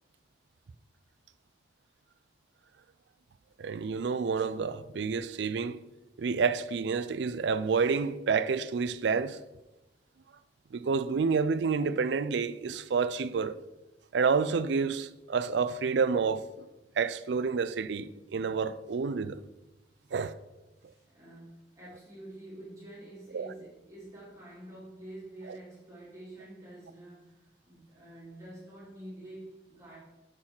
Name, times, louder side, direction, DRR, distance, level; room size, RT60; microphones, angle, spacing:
voice 1, 3.6-5.8 6.2-9.4 10.7-13.6 14.1-16.7 17.0-19.4 20.1-20.3 23.3-23.5, right 5 dB, 80° right, 0.4 m, -29 dB
voice 2, 20.8-30.0, right 1 dB, 20° right, 3.3 m, -48 dB
6.5 x 6.0 x 5.7 m
head